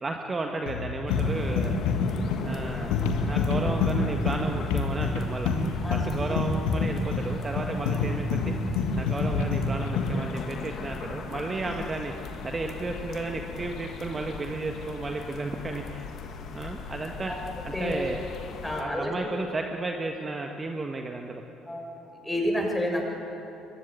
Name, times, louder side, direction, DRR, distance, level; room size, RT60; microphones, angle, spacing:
voice 1, 0.0-1.8 2.4-5.5 5.9-8.5 9.0-12.1 12.4-16.1 16.5-18.3 18.8-21.4, right 3 dB, 30° right, 3 dB, 1.6 m, -33 dB
sound 1, 0.7-10.2, left 4 dB, 70° left, 2.0 m, -27 dB
sound 2, 1.1-18.8, left 5 dB, 55° left, 2.1 m, -38 dB
voice 2, 5.8-6.2 17.3-17.4 17.7-18.0 18.6-19.1 21.7-22.0 22.2-23.0, left 1 dB, 10° left, 1 dB, 6.9 m, -29 dB
22.5 x 20.0 x 9.0 m, 2.9 s
hypercardioid pair, 55°, 0 cm